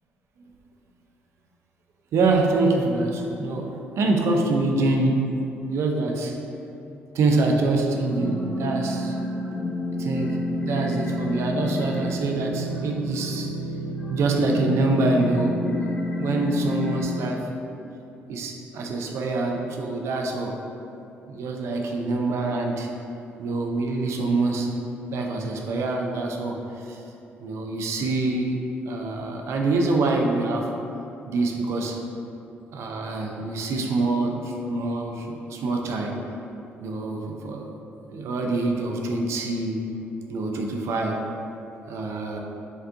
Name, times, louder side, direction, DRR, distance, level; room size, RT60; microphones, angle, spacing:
voice 1, 2.1-3.7 4.0-5.2 5.7-6.4 7.1-9.2 10.0-10.4 10.6-13.5 14.1-17.5 18.3-20.5 21.3-22.9 23.4-24.7 25.1-27.0 27.4-30.7 31.3-32.0 32.7-36.2 36.8-37.7 38.1-39.9 40.3-41.2 41.9-42.4, right 2 dB, 70° right, 1 dB, 0.5 m, -25 dB
sound 1, 8.1-17.0, left 1 dB, 20° left, 1.1 m, -29 dB
5.3 x 2.5 x 3.6 m, 2.9 s
cardioid pair, 75°, 5 cm